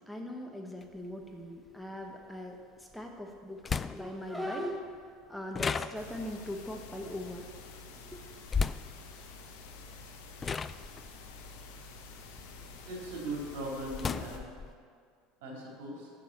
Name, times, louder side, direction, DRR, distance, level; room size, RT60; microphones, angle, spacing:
voice 1, 0.1-7.5 8.0-8.4, left 1 dB, 5° left, 2 dB, 1.1 m, -40 dB
sound 1, 0.8-0.9 2.9-3.0 3.6-4.3 5.5-6.4 8.5-9.0 9.9-10.1 10.4-12.8 13.2-14.7, left 5 dB, 30° left, 0.3 m, -34 dB
sound 2, 5.9-14.4, left 3 dB, 75° left, 1.0 m, -49 dB
voice 2, 12.8-14.5 15.4-16.1, right 1 dB, 70° right, -3 dB, 2.9 m, -39 dB
7.5 x 6.7 x 7.2 m, 2.1 s
hypercardioid pair, 85°, 0 cm